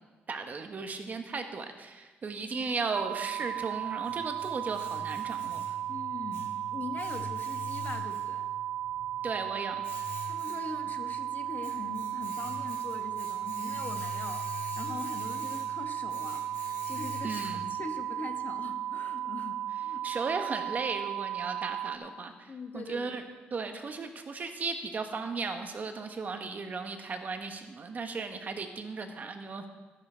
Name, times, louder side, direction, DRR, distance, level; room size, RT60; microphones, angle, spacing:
voice 1, 0.3-5.6 9.2-9.8 17.2-17.7 20.0-23.2 23.5-29.7, right 4 dB, 40° right, 6 dB, 1.2 m, -36 dB
sound 1, 2.9-22.0, right 11 dB, 75° right, 0.6 m, -35 dB
Domestic sounds home sounds, 3.5-17.9, left 6 dB, 75° left, 1.7 m, -46 dB
voice 2, 5.9-8.5 10.2-20.1 22.5-23.2, left 4 dB, 45° left, 6 dB, 1.3 m, -42 dB
14.0 x 9.6 x 4.5 m, 1.3 s
cardioid pair, 105°, 4 cm